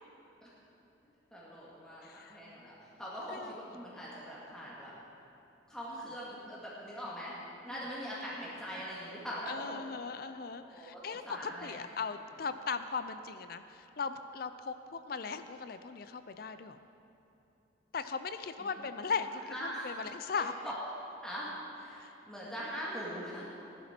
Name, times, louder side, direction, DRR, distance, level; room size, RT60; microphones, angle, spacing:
voice 1, 1.3-4.9 5.7-7.4 7.6-9.8 10.7-11.8 18.6-18.9 19.5-19.9 20.4-20.7 21.2-21.5 21.8-23.5, equal, 5° left, -8 dB, 1.9 m, -42 dB
voice 2, 2.0-2.3 3.3-3.5 7.7-7.8 9.5-16.8 17.9-20.5, left 5 dB, 50° left, 11 dB, 0.4 m, -38 dB
16.0 x 11.5 x 4.4 m, 2.8 s
head